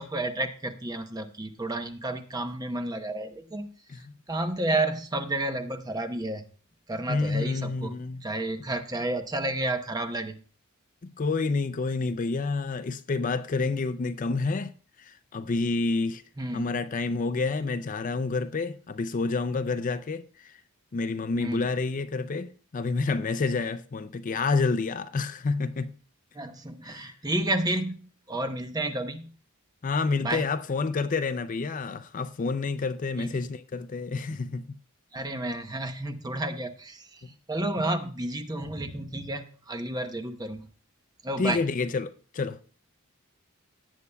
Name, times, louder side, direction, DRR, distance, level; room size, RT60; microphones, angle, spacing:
voice 1, 0.0-3.7 4.3-6.4 6.9-7.9 8.2-10.4 16.4-16.6 21.4-21.6 26.3-29.3 30.2-30.5 33.2-33.3 35.1-37.1 37.5-40.7 41.2-41.6, right 1 dB, 20° right, 0.8 m, -31 dB
voice 2, 7.1-8.3 11.0-16.2 16.5-20.6 20.9-25.9 26.8-27.2 29.8-34.6 41.4-42.6, left 4 dB, 40° left, 0.4 m, -29 dB
17.5 x 8.2 x 2.3 m
head